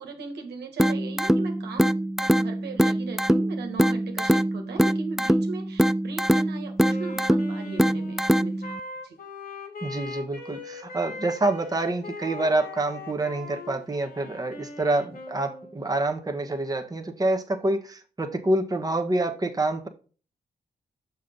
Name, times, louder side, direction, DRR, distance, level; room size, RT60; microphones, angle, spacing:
voice 1, 0.0-9.2, right 4 dB, 85° right, 1.7 m, -38 dB
sound 1, 0.8-8.8, right 1 dB, ahead, 0.3 m, -23 dB
Wind instrument woodwind instrument, 6.8-15.8, left 2 dB, 60° left, 3.1 m, -40 dB
voice 2, 9.8-19.9, right 2 dB, 20° right, 1.3 m, -27 dB
6.5 x 5.7 x 3.8 m
cardioid pair, 60°, 17 cm